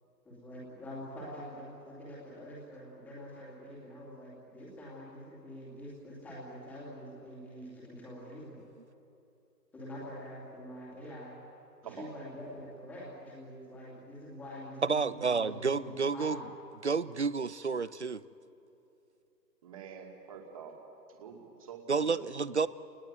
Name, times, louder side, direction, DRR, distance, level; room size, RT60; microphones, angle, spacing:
voice 1, 0.2-8.6 9.7-11.3 11.9-16.5, equal, 5° left, -6 dB, 2.6 m, -45 dB
voice 2, 14.8-16.4 16.8-18.2 21.9-22.7, right 5 dB, 45° right, 17 dB, 0.6 m, -30 dB
voice 3, 19.6-20.7 21.1-22.2, right 7 dB, 20° right, 1 dB, 2.5 m, -46 dB
29.0 x 20.0 x 9.3 m, 2.8 s
hypercardioid pair, 170°, 50 cm